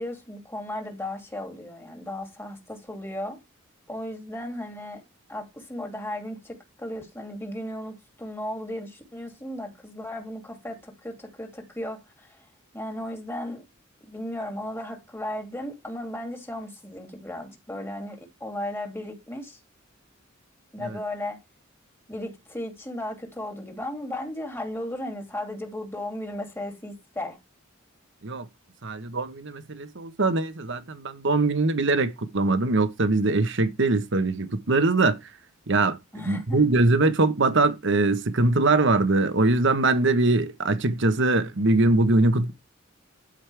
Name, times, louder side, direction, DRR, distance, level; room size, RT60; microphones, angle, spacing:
voice 1, 0.0-3.4 3.9-5.0 5.3-12.5 12.7-13.6 14.1-19.6 20.7-21.4 22.1-27.4 36.1-36.6, left 1 dB, 10° left, 2.6 m, -35 dB
voice 2, 28.8-35.2 35.7-36.0 36.2-42.5, right 2 dB, 65° right, 1.2 m, -22 dB
12.5 x 5.4 x 3.4 m
head